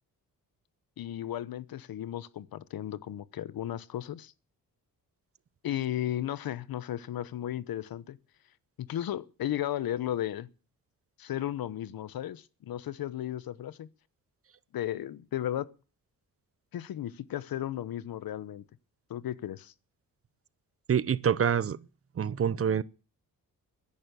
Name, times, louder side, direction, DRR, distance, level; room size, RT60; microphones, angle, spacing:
voice 1, 1.0-4.3 5.6-8.2 8.8-10.5 11.2-13.9 14.7-15.7 16.7-18.6 19.1-19.7, left 12 dB, 80° left, 1.0 m, -35 dB
voice 2, 20.9-21.8 22.2-22.8, right 8 dB, 40° right, 0.7 m, -26 dB
15.5 x 11.0 x 7.0 m
wide cardioid pair, 140°, 35 cm